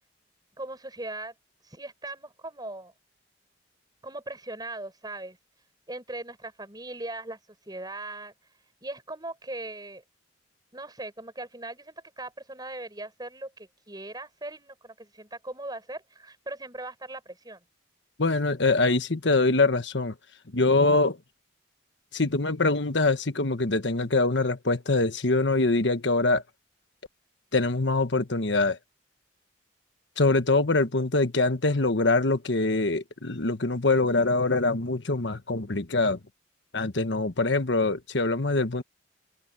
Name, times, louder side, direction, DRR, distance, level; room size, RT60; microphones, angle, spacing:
voice 1, 0.6-1.3 1.6-2.9 4.0-5.4 5.9-7.4 7.7-8.3 8.8-10.0 10.7-17.6, right 2 dB, 20° right, 6.2 m, -39 dB
voice 2, 18.2-20.1 20.5-21.2 22.1-26.4 27.5-28.8 30.2-36.2 36.7-38.8, left 3 dB, 70° left, 1.4 m, -24 dB
open air
head